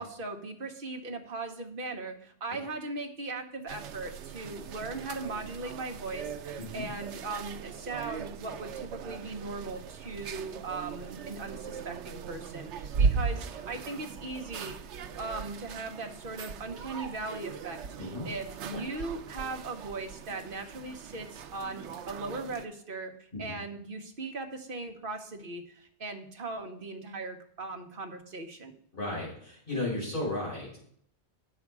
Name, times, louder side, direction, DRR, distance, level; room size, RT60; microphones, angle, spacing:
voice 1, 0.0-14.8 15.1-23.1 23.4-28.7, right 3 dB, 55° right, 4 dB, 1.3 m, -39 dB
sound 1, 3.7-22.7, right 5 dB, 90° right, 0.9 m, -38 dB
voice 2, 6.6-6.9 18.0-18.3 18.7-18.8 23.3-23.5 28.9-30.8, left 2 dB, 50° left, -5 dB, 4.9 m, -34 dB
9.4 x 7.1 x 4.7 m, 0.62 s
omnidirectional pair, 1.1 m